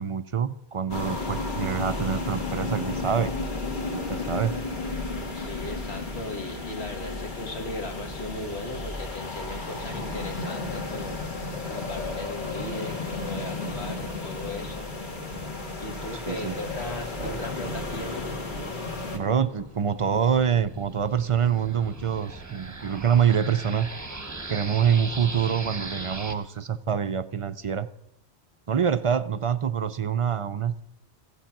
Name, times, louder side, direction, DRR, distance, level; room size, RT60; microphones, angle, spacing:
voice 1, 0.0-3.3 3.9-4.5 16.3-16.5 19.1-23.9 24.5-27.9 28.7-30.8, right 8 dB, 45° right, 13 dB, 0.4 m, -25 dB
sound 1, 0.9-19.2, left 3 dB, 45° left, 1.8 m, -33 dB
voice 2, 5.3-14.9 15.8-18.3, left 2 dB, 70° left, 4 dB, 2.0 m, -37 dB
Thunder, 17.0-20.3, equal, 90° left, 2.6 m, -43 dB
sound 2, 19.5-26.3, right 3 dB, 15° right, 0.9 m, -39 dB
15.0 x 10.0 x 5.9 m, 0.77 s
omnidirectional pair, 1.1 m